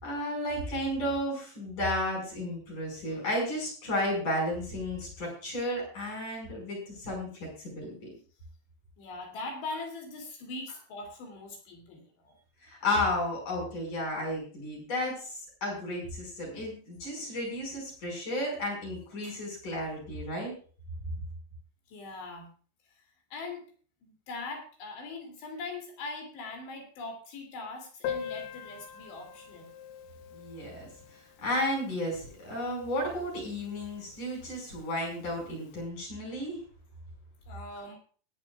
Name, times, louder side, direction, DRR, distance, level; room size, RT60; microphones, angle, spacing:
voice 1, 0.0-8.1 12.6-20.5 30.3-36.6, left 1 dB, 40° left, -1 dB, 6.3 m, -33 dB
voice 2, 9.0-12.4 21.9-22.5 22.9-23.6 24.0-29.7 37.5-38.0, left 3 dB, 60° left, 2 dB, 4.6 m, -41 dB
Piano, 28.0-33.4 33.7-33.8 34.0-34.1 34.5-34.6 35.3-35.5, left 8 dB, 85° left, 3.6 m, -42 dB
21.5 x 9.9 x 2.4 m, 0.40 s
omnidirectional pair, 6.0 m